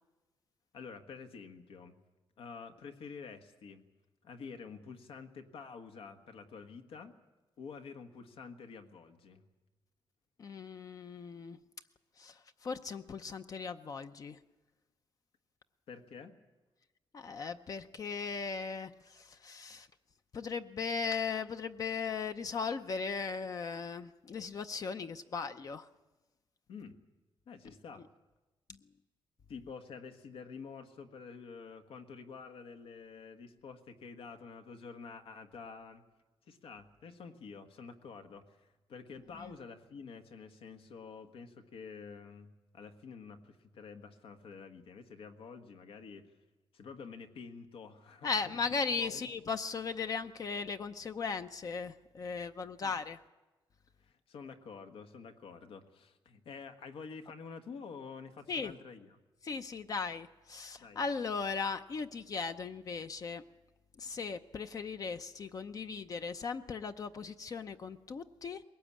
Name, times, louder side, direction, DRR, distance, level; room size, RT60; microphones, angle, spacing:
voice 1, 0.7-2.0 2.4-3.8 4.2-7.2 7.6-9.4 15.9-16.3 26.7-27.0 27.5-28.0 29.5-36.0 36.5-46.3 46.7-48.4 49.0-49.3 52.8-52.9 54.0-59.2 60.8-61.0, left 5 dB, 80° left, 7 dB, 1.6 m, -48 dB
voice 2, 10.4-11.6 12.2-14.4 17.1-19.9 20.3-25.9 28.7-28.8 39.4-39.5 48.2-53.2 58.5-58.7 59.4-63.4 64.0-68.6, left 5 dB, 40° left, 9 dB, 0.6 m, -37 dB
21.0 x 18.0 x 8.7 m, 1.1 s
wide cardioid pair, 150°, 9 cm